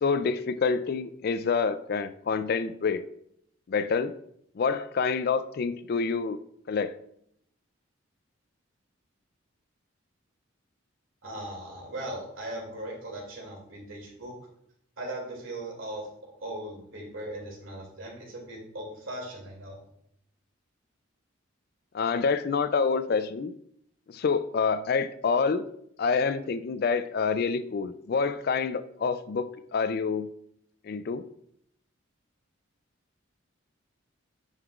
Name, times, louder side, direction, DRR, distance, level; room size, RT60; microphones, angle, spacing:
voice 1, 0.0-3.0 3.7-4.1 4.6-6.4 6.7-6.9 21.9-23.5 24.1-25.6 26.0-30.3 30.9-31.2, left 5 dB, 50° left, 12 dB, 0.3 m, -27 dB
voice 2, 11.2-14.3 15.0-16.1 16.4-19.8, right 1 dB, 80° right, -1 dB, 2.5 m, -38 dB
9.0 x 5.5 x 2.4 m, 0.71 s
head